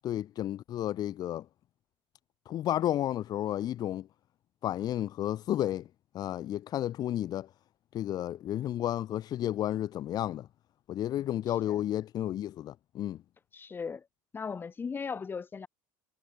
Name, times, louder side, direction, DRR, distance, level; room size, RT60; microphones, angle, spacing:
voice 1, 0.0-1.4 2.5-4.1 4.6-5.9 6.1-7.5 7.9-10.5 10.9-13.2, left 12 dB, 40° left, 2.5 m, -32 dB
voice 2, 13.5-14.1 14.3-15.7, left 5 dB, 20° left, 7.6 m, -38 dB
cardioid pair, 140°, 10 cm